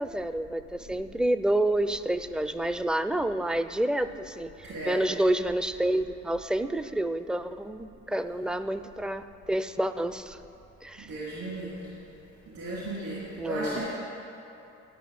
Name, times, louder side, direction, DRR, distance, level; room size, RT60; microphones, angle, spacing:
voice 1, 0.0-10.4 10.8-11.1 13.4-13.8, right 1 dB, 5° right, 11 dB, 0.4 m, -29 dB
voice 2, 4.6-5.1 11.0-12.0 12.5-13.9, right 1 dB, 65° right, -8 dB, 3.2 m, -35 dB
12.5 x 5.7 x 8.5 m, 2.8 s
cardioid pair, 90°, 30 cm